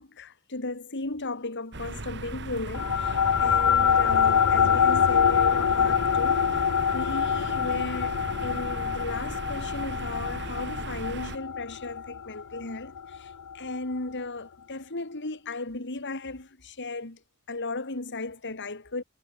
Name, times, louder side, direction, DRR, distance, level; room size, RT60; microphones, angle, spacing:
voice 1, 0.0-8.1 8.4-17.2 17.5-19.0, left 2 dB, 55° left, 2.7 m, -36 dB
sound 1, 1.7-11.4, right 2 dB, 55° right, 2.7 m, -37 dB
sound 2, 2.7-13.5, left 7 dB, 80° left, 0.6 m, -25 dB
head